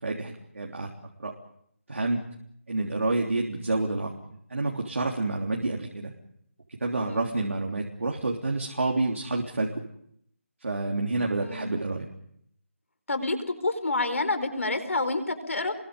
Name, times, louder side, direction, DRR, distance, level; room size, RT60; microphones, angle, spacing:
voice 1, 0.0-0.9 1.2-1.3 1.9-2.2 2.7-4.1 4.5-6.1 6.8-9.7 10.6-12.1, right 2 dB, 70° right, -1 dB, 3.4 m, -28 dB
voice 2, 11.4-11.7 13.1-13.4 13.6-15.7, left 2 dB, 70° left, 9 dB, 4.6 m, -28 dB
30.0 x 22.5 x 5.4 m, 0.71 s
figure-of-eight pair, 180°, 8 cm